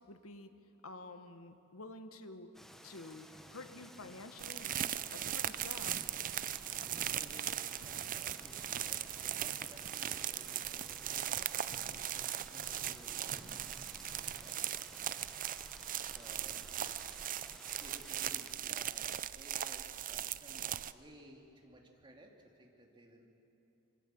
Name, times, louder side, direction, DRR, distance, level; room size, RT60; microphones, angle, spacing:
voice 1, 0.1-0.5 0.8-2.5 2.8-4.8 5.1-6.1, left 2 dB, 85° left, 8 dB, 1.5 m, -49 dB
sound 1, 2.5-18.5, equal, ahead, 1.1 m, -55 dB
sound 2, 4.4-20.9, right 11 dB, 40° right, 0.5 m, -39 dB
voice 2, 7.2-14.8 16.1-17.3 17.6-23.3, right 1 dB, 25° right, 1 dB, 2.8 m, -58 dB
sound 3, 7.8-9.1 9.5-9.7 10.3-14.4 15.3-16.1 16.4-16.5, equal, 70° right, 6.8 m, -58 dB
26.0 x 22.5 x 7.8 m, 3.0 s
head